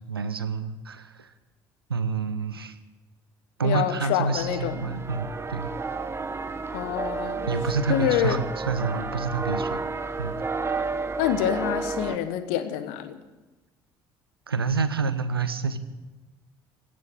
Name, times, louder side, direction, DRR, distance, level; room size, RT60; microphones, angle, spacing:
voice 1, 0.0-1.3 1.9-2.8 3.6-5.7 7.5-9.8 10.2-10.3 14.5-15.8, right 5 dB, 85° right, 12 dB, 0.8 m, -28 dB
voice 2, 3.6-5.0 6.7-7.5 7.9-8.4 11.2-13.2, left 11 dB, 60° left, 11 dB, 1.2 m, -26 dB
sound 1, 4.3-12.2, right 4 dB, 20° right, 1.1 m, -31 dB
17.0 x 7.6 x 10.0 m, 1.1 s
figure-of-eight pair, 55°, 12 cm